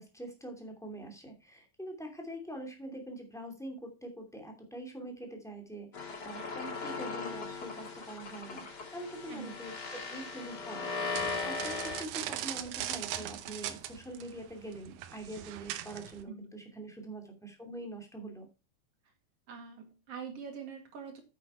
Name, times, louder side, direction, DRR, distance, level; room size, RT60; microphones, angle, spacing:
voice 1, 0.0-18.5, right 1 dB, ahead, 2 dB, 2.3 m, -44 dB
sound 1, 5.9-12.0, left 4 dB, 35° left, 2.3 m, -38 dB
voice 2, 9.3-9.6 16.3-16.5 19.5-21.2, right 6 dB, 55° right, 5 dB, 2.9 m, -44 dB
sound 2, 11.1-16.2, right 12 dB, 85° right, 2.3 m, -40 dB
9.2 x 7.8 x 4.4 m, 0.30 s
omnidirectional pair, 3.4 m